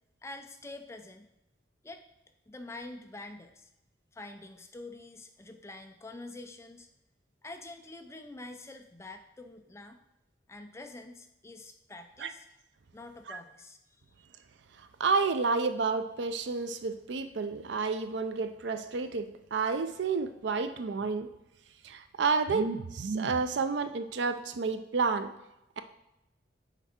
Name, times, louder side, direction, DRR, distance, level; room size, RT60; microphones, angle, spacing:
voice 1, 0.2-1.3 1.8-2.0 2.5-3.7 4.1-6.9 7.4-10.0 10.5-12.5 12.9-13.8, left 2 dB, 15° left, 6 dB, 0.4 m, -46 dB
voice 2, 15.0-21.3 21.8-25.3, right 4 dB, 65° right, 9 dB, 0.5 m, -30 dB
5.9 x 4.5 x 4.2 m, 0.89 s
head